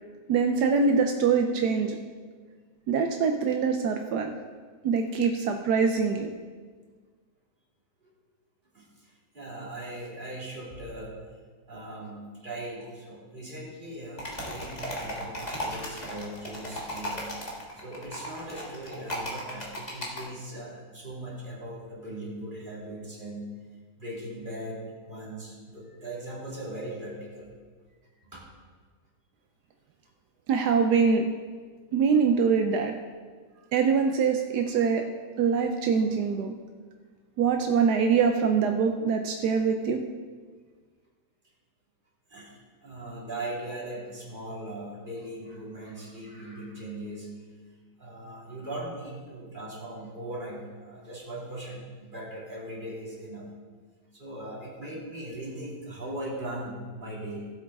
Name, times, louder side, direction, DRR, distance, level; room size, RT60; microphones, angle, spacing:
voice 1, 0.3-2.0 2.9-4.4 4.8-6.3 30.5-31.3 31.9-32.9 33.7-35.0 35.4-36.5 37.4-40.0, right 5 dB, 80° right, 4 dB, 1.2 m, -24 dB
voice 2, 8.7-11.2 11.7-17.3 17.8-23.5 24.0-27.5 28.2-28.4 42.3-47.3 48.0-53.5 54.1-57.5, right 1 dB, 30° right, -5 dB, 2.7 m, -39 dB
sound 1, 14.2-20.2, equal, 25° left, 1.6 m, -36 dB
16.5 x 8.0 x 3.5 m, 1.5 s
omnidirectional pair, 1.8 m